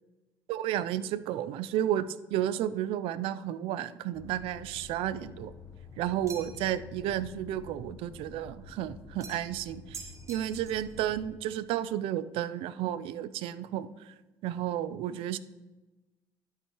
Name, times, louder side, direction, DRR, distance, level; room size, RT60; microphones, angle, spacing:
voice 1, 0.5-5.5 6.0-10.0 10.3-14.1 14.4-15.4, right 11 dB, 75° right, 15 dB, 0.4 m, -32 dB
sound 1, 4.1-11.3, left 4 dB, 30° left, 0.9 m, -49 dB
sound 2, 6.3-6.8 9.2-9.6 9.9-10.9, right 5 dB, 30° right, 0.8 m, -46 dB
12.0 x 5.5 x 3.0 m, 1.1 s
cardioid pair, 100°, 9 cm